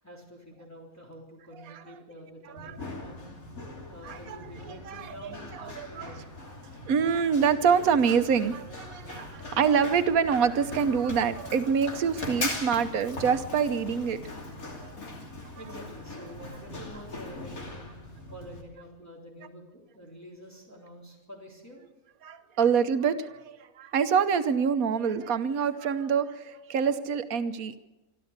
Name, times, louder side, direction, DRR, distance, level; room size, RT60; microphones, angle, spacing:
voice 1, 0.0-3.4 3.9-6.2 15.3-17.9 18.3-21.8, equal, 10° left, -2 dB, 3.6 m, -47 dB
Run, 2.6-18.6, left 2 dB, 85° left, 3.3 m, -40 dB
voice 2, 4.0-4.4 4.6-6.1 6.9-14.2 14.8-14.9 22.2-27.8, right 6 dB, 90° right, 10 dB, 1.4 m, -26 dB
26.0 x 12.5 x 8.1 m, 1.1 s
omnidirectional pair, 1.4 m